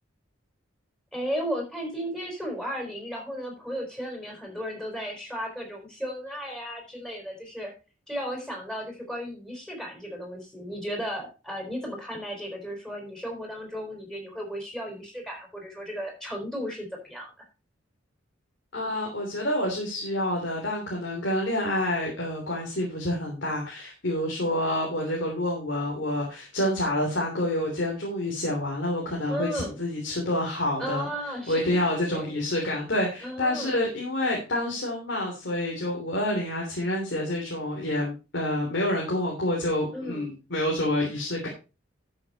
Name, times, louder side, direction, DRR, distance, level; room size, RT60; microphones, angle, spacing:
voice 1, 1.1-7.7 8.1-17.3 29.3-29.8 30.8-31.7 32.3-32.4 33.2-33.8 39.9-40.3, equal, 5° left, 0 dB, 4.4 m, -34 dB
voice 2, 18.7-31.1 31.5-41.5, left 1 dB, 65° left, -1 dB, 3.2 m, -28 dB
12.5 x 6.6 x 4.2 m, 0.31 s
head